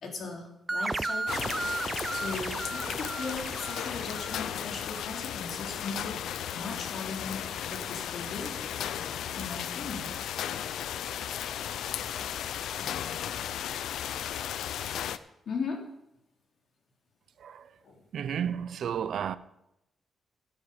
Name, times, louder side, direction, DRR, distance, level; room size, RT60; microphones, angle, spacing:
voice 1, 0.0-1.8 2.1-8.7 9.3-10.2 12.2-12.3 12.8-13.0 15.4-15.8 17.8-18.0, left 4 dB, 60° left, 3.0 m, -38 dB
sound 1, 0.7-5.0, right 2 dB, 20° right, 0.4 m, -34 dB
sound 2, 1.3-15.2, left 10 dB, 85° left, 0.5 m, -35 dB
voice 2, 18.1-19.4, right 8 dB, 65° right, 0.6 m, -32 dB
15.5 x 9.6 x 5.0 m
cardioid pair, 125°, 0 cm